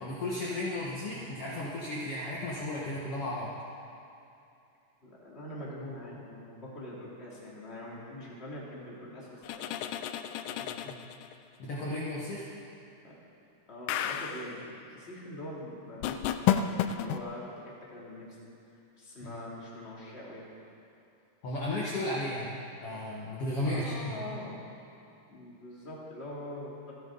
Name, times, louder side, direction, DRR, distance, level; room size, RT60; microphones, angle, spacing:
voice 1, 0.0-3.5 10.6-11.0 11.6-12.5 19.2-19.4 21.4-22.5 22.8-24.2, left 1 dB, 55° left, -5 dB, 2.1 m, -34 dB
voice 2, 5.0-10.7 13.0-13.2 13.7-16.3 16.6-20.5 23.6-24.5 25.3-26.9, left 1 dB, 20° left, -5 dB, 2.7 m, -44 dB
sound 1, 9.4-11.3 13.9-14.5 16.0-17.2, left 10 dB, 85° left, 2.1 m, -31 dB
27.0 x 9.6 x 3.9 m, 2.7 s
omnidirectional pair, 3.5 m